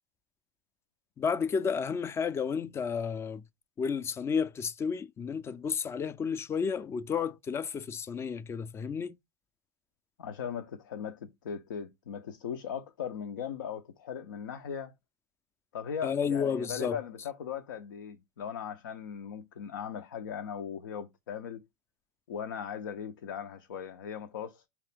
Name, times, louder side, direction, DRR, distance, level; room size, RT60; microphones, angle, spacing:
voice 1, 1.2-3.4 3.8-9.2 16.0-17.0, left 6 dB, 25° left, 0.4 m, -31 dB
voice 2, 10.2-14.9 15.7-21.6 22.3-24.7, left 8 dB, 75° left, 0.6 m, -38 dB
4.9 x 2.9 x 3.3 m
hypercardioid pair, 85°, 11 cm